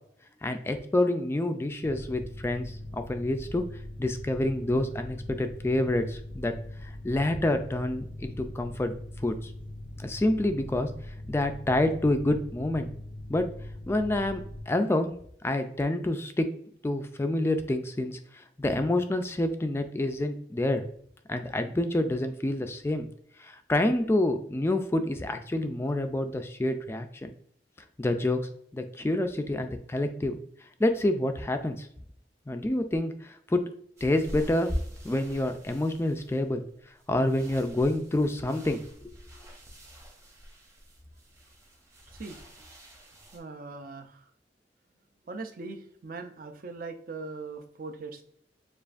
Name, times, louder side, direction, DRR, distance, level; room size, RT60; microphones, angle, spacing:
voice 1, 0.4-3.6 4.0-6.5 6.8-8.9 9.2-9.5 10.0-10.9 11.3-12.9 13.3-13.5 13.9-15.1 15.4-16.5 16.8-20.8 21.3-23.1 23.4-27.3 28.0-30.4 30.8-31.9 32.5-33.6 34.0-34.7 35.0-36.6 37.1-38.8, left 1 dB, 15° left, 7 dB, 0.3 m, -28 dB
Mechanical fan, 1.8-14.6, left 1 dB, 85° right, 1.2 m, -41 dB
sound 1, 34.0-43.4, equal, 15° right, 0.9 m, -42 dB
voice 2, 42.1-42.7 43.3-44.3 45.3-48.2, right 3 dB, 50° right, 6 dB, 0.5 m, -41 dB
6.9 x 2.5 x 2.5 m, 0.66 s
head